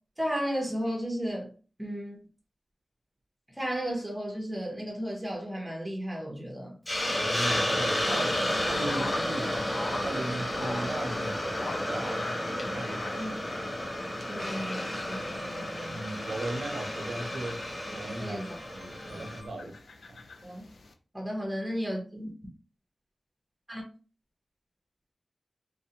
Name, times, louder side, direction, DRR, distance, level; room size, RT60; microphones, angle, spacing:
voice 1, 0.2-1.5 1.8-2.2 3.6-6.7 13.2-13.3 14.3-16.0 18.2-18.5 19.1-19.3 20.4-20.6 21.1-22.3 23.7-23.8, equal, 15° right, 0.7 m, -34 dB
Hiss, 6.9-19.4, left 1 dB, 30° left, 0.6 m, -32 dB
voice 2, 7.1-12.2 12.7-13.2 15.9-17.6 17.9-18.5 18.7-19.8 20.1-20.2, right 2 dB, 85° right, 0.5 m, -37 dB
sound 1, 7.9-20.9, left 3 dB, 85° left, 0.3 m, -44 dB
sound 2, 8.0-19.5, left 1 dB, 60° left, 0.9 m, -52 dB
2.4 x 2.0 x 2.7 m
wide cardioid pair, 75°, 0 cm